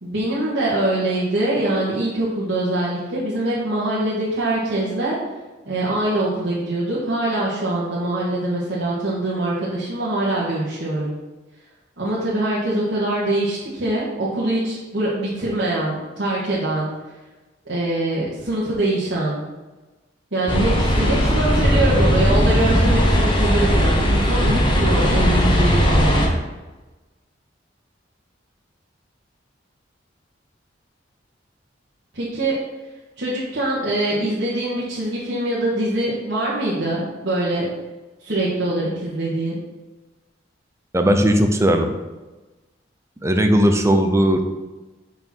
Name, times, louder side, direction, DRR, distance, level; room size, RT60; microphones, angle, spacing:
voice 1, 0.0-5.2 5.6-11.1 12.0-16.9 17.6-19.4 20.3-26.2 32.1-32.5 33.2-37.7 38.2-39.6, right 1 dB, 65° right, -8 dB, 1.7 m, -23 dB
sound 1, 20.5-26.3, equal, 25° left, 1.3 m, -18 dB
voice 2, 40.9-41.9 43.2-44.4, equal, 15° right, 5 dB, 0.7 m, -17 dB
6.8 x 4.5 x 6.2 m, 1.2 s
head